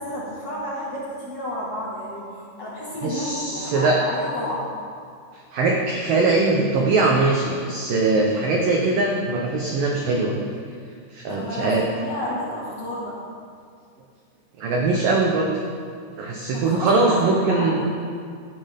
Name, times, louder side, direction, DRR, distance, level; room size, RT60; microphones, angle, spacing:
voice 1, 0.0-4.7 11.3-13.2 16.5-17.9, left 1 dB, 50° left, -6 dB, 2.0 m, -31 dB
voice 2, 3.0-4.0 5.3-10.4 11.1-11.8 14.6-15.6 16.2-17.9, right 3 dB, 90° right, 0 dB, 1.9 m, -21 dB
17.0 x 11.5 x 3.6 m, 2.2 s
omnidirectional pair, 5.4 m